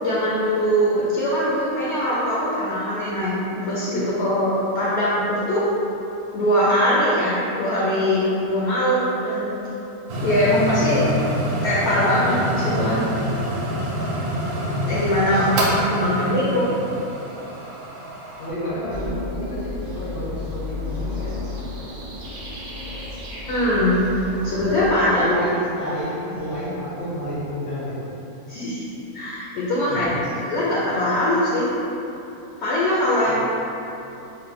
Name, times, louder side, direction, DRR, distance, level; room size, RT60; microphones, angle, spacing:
voice 1, 0.0-5.6 6.3-9.6 10.2-11.0 11.6-13.0 14.9-16.8 23.4-24.1 24.4-25.3 28.5-28.8 29.1-30.1 30.5-31.7 32.6-33.4, equal, 65° left, -8 dB, 0.7 m, -21 dB
sound 1, 10.1-18.5, equal, 85° right, 1.1 m, -26 dB
voice 2, 15.9-17.2 18.4-21.5 25.1-28.1 29.8-30.2 33.2-33.4, equal, 85° left, -11 dB, 1.4 m, -31 dB
sound 2, 18.9-24.9, left 3 dB, 65° right, 1.0 m, -33 dB
3.2 x 2.1 x 3.2 m, 2.9 s
omnidirectional pair, 1.5 m